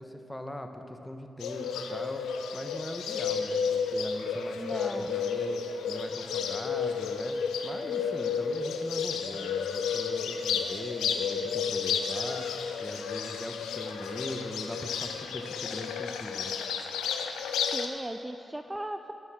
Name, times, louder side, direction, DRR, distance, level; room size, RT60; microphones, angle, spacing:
voice 1, 0.0-2.2 2.5-7.4 7.6-12.5 12.8-16.6, left 1 dB, 15° left, 5 dB, 1.1 m, -41 dB
Bird, 1.4-17.9, left 6 dB, 90° left, 0.5 m, -32 dB
voice 2, 4.6-5.1 17.6-19.1, right 1 dB, 15° right, 7 dB, 0.4 m, -37 dB
9.5 x 6.7 x 7.5 m, 2.9 s
supercardioid pair, 40°, 0 cm